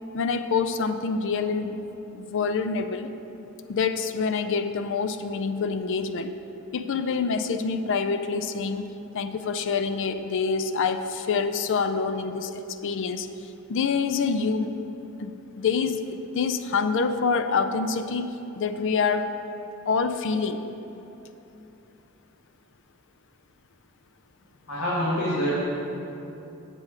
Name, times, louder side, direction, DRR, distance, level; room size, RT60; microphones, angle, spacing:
voice 1, 0.1-1.8 2.1-3.1 3.7-6.3 6.7-8.9 9.1-13.3 13.7-14.7 15.2-18.3 18.6-19.3 19.9-20.6, left 5 dB, 60° left, 10 dB, 0.4 m, -26 dB
voice 2, 24.7-25.6, equal, 80° left, -8 dB, 1.7 m, -25 dB
7.6 x 7.4 x 4.9 m, 3.0 s
head